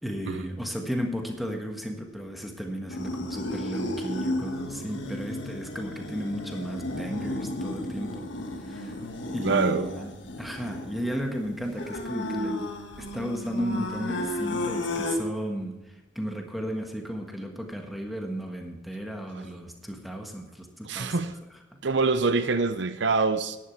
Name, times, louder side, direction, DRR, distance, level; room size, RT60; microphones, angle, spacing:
voice 1, 0.0-8.3 8.6-9.0 9.3-21.1 21.7-21.8, equal, ahead, 2 dB, 1.4 m, -34 dB
sound 1, 2.9-15.2, left 1 dB, 75° left, 1.5 m, -33 dB
voice 2, 9.4-9.9 20.8-21.4 21.8-23.6, right 4 dB, 65° right, 10 dB, 0.6 m, -25 dB
11.0 x 10.5 x 4.6 m, 1.1 s
head